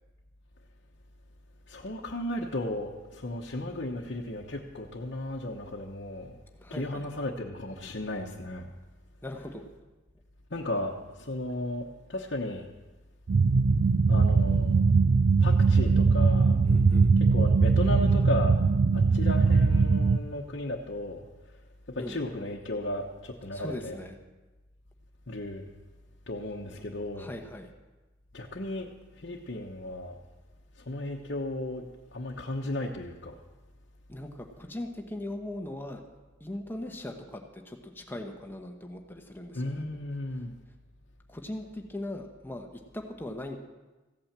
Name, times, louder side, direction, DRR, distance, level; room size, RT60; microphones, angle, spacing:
voice 1, 1.7-6.4 6.7-8.7 10.5-12.7 14.1-14.8 15.4-16.6 17.2-18.6 18.9-21.2 21.9-24.0 25.3-25.7 26.3-27.3 28.3-30.2 30.8-31.8 32.1-33.3 39.5-40.5, left 1 dB, 60° left, -2 dB, 1.1 m, -35 dB
voice 2, 6.6-7.1 9.2-9.6 16.6-17.1 22.0-22.2 23.5-24.2 27.1-27.7 34.1-36.0 36.4-39.8 41.3-43.6, left 1 dB, 10° left, 3 dB, 1.0 m, -39 dB
sound 1, 13.3-20.2, right 4 dB, 50° right, 0.4 m, -21 dB
15.5 x 8.7 x 7.4 m, 1.2 s
head